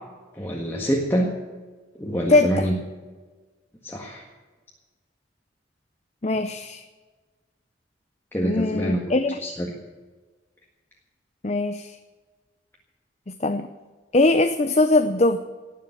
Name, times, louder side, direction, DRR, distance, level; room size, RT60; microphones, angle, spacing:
voice 1, 0.4-1.3 2.0-2.8 3.8-4.2 8.3-9.1 9.4-9.7, equal, 15° left, -1 dB, 1.7 m, -25 dB
voice 2, 2.3-2.7 6.2-6.8 8.4-9.4 11.4-12.0 13.4-13.7 14.1-15.4, left 2 dB, 35° left, 8 dB, 0.7 m, -21 dB
18.5 x 7.4 x 9.9 m, 1.3 s
head